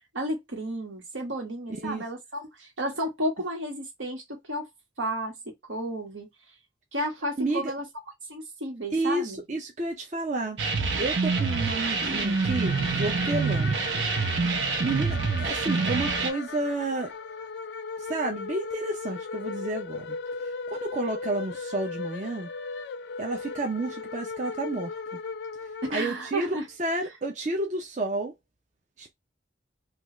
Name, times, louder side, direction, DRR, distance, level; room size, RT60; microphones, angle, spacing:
voice 1, 0.1-4.7 5.0-5.3 5.7-6.3 6.9-7.8 8.3-9.4 25.9-26.6, right 1 dB, 90° right, 1.5 m, -32 dB
voice 2, 1.7-2.0 7.4-7.7 8.9-10.6 11.0-13.8 14.8-17.1 18.0-20.2 20.4-22.5 23.2-25.2 25.9-28.3 29.0-29.1, right 2 dB, 40° right, 0.5 m, -31 dB
sound 1, 10.6-16.3, right 4 dB, 70° right, 0.7 m, -26 dB
sound 2, 11.3-26.5, left 4 dB, 60° left, 0.3 m, -37 dB
3.3 x 2.4 x 3.0 m
head